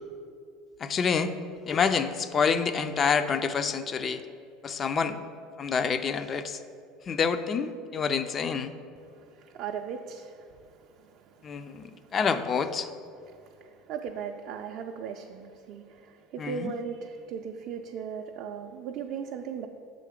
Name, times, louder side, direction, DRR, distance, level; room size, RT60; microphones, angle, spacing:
voice 1, 0.8-1.3 1.6-4.2 4.6-5.2 5.6-6.6 7.1-8.7 11.4-12.9 16.4-16.7, left 6 dB, 35° left, 0.4 m, -27 dB
voice 2, 9.1-12.1 13.3-19.7, right 6 dB, 60° right, 0.3 m, -38 dB
6.6 x 3.8 x 5.0 m
supercardioid pair, 95°, 0 cm